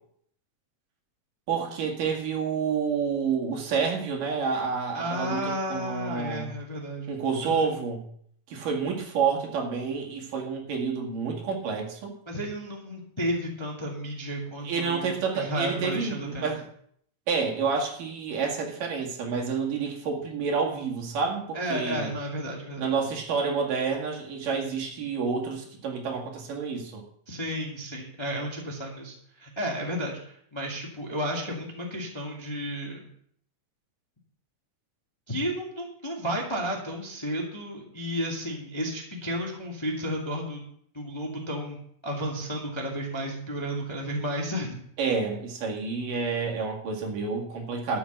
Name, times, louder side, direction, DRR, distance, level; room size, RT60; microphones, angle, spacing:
voice 1, 1.5-6.5 7.1-8.0 8.5-12.1 14.6-16.6 17.3-22.1 22.8-27.0 45.0-48.0, right 5 dB, 75° right, 1 dB, 3.7 m, -29 dB
voice 2, 4.9-7.2 7.4-7.7 12.3-16.5 21.5-22.9 27.3-33.0 35.3-40.6 40.9-41.8 42.0-44.8, equal, 10° left, -1 dB, 1.4 m, -32 dB
13.0 x 6.1 x 8.0 m, 0.65 s
omnidirectional pair, 3.8 m